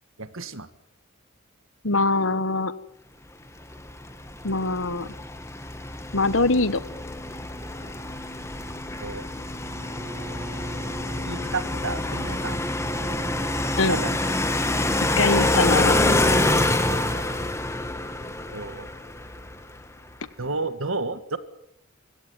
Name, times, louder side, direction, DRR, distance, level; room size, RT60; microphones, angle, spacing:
voice 1, 0.2-0.7 9.0-9.3 11.1-12.6 13.8-14.3 16.9-17.3 18.5-18.9 20.4-21.4, right 3 dB, 70° right, 11 dB, 1.9 m, -32 dB
voice 2, 1.8-2.7 4.4-5.1 6.1-6.8 13.8-14.0 15.2-16.4, left 3 dB, 70° left, 15 dB, 1.3 m, -23 dB
sound 1, 3.7-19.9, left 1 dB, 15° left, 1.5 m, -26 dB
Bowed string instrument, 9.7-14.5, equal, 40° right, 5.2 m, -40 dB
24.5 x 17.0 x 9.5 m, 0.79 s
head